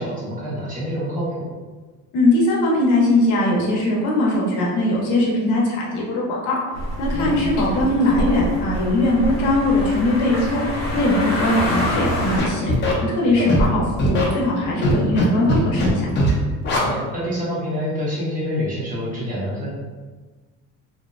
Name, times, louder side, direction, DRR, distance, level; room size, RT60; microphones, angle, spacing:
voice 1, 0.0-1.5 7.1-7.4 13.3-13.6 16.7-19.7, equal, 25° right, -8 dB, 0.8 m, -27 dB
voice 2, 2.1-6.6 7.0-10.6 10.9-16.1, left 1 dB, 80° left, -3 dB, 0.7 m, -20 dB
sound 1, 6.7-12.4, equal, 55° left, 0.9 m, -26 dB
Scratching (performance technique), 12.4-12.9 13.5-13.7 14.0-14.2 14.8-15.2 15.5-16.3 16.6-16.8, left 1 dB, 35° left, 0.5 m, -19 dB
2.6 x 2.1 x 2.3 m, 1.3 s
cardioid pair, 175°, 30 cm